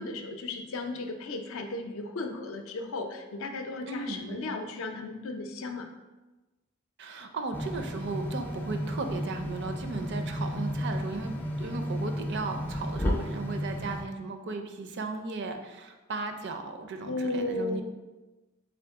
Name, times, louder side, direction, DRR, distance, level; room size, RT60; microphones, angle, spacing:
voice 1, 0.0-5.9 17.0-17.8, left 2 dB, 65° left, 5 dB, 0.5 m, -35 dB
voice 2, 3.9-4.4 7.0-11.3 11.6-17.8, right 3 dB, 55° right, 6 dB, 0.4 m, -36 dB
sound 1, 7.5-14.0, equal, 10° left, 0.4 m, -33 dB
3.7 x 3.6 x 3.5 m, 1.1 s
head